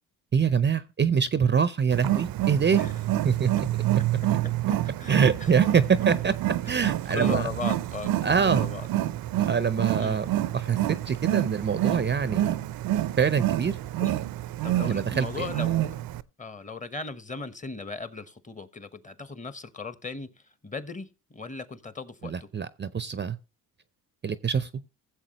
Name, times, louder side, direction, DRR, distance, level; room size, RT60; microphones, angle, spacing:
voice 1, 0.3-2.8 3.2-3.7 5.1-6.3 6.7-7.5 8.2-8.7 9.4-10.8 11.1-12.5 13.2-13.8 14.9-15.5 22.2-23.4 24.2-24.7, right 6 dB, 30° right, 0.6 m, -24 dB
Wild animals, 1.9-16.2, right 14 dB, 65° right, 0.7 m, -28 dB
voice 2, 4.4-5.6 6.8-8.9 9.9-10.2 14.0-14.2 14.6-16.0 16.4-22.5, left 4 dB, 20° left, 1.1 m, -38 dB
16.0 x 7.3 x 3.0 m
supercardioid pair, 75°, 38 cm